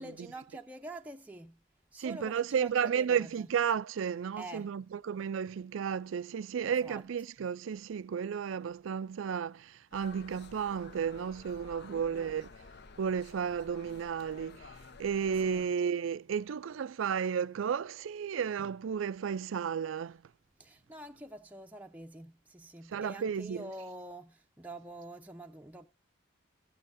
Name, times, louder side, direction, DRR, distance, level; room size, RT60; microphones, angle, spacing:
voice 1, 0.0-1.6 1.9-3.3 4.4-4.7 6.6-7.0 11.9-12.3 15.4-15.7 20.6-25.9, right 1 dB, 10° right, 0.6 m, -46 dB
voice 2, 2.0-12.5 13.0-14.7 15.0-20.2 22.9-23.7, right 7 dB, 75° right, 0.4 m, -33 dB
sound 1, 9.9-15.7, left 4 dB, 55° left, 0.7 m, -52 dB
13.5 x 8.4 x 2.6 m
head